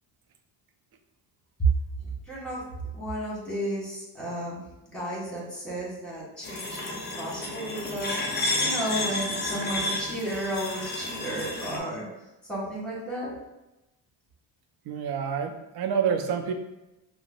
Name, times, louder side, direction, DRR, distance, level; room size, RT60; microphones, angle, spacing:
voice 1, 2.0-2.6 2.9-4.6 4.9-12.1 12.4-13.4, right 1 dB, ahead, -6 dB, 1.5 m, -33 dB
sound 1, 6.4-11.8, left 2 dB, 20° left, 0.6 m, -31 dB
voice 2, 14.9-16.5, right 7 dB, 50° right, 5 dB, 0.6 m, -28 dB
5.6 x 2.0 x 2.4 m, 0.98 s
cardioid pair, 100°, 47 cm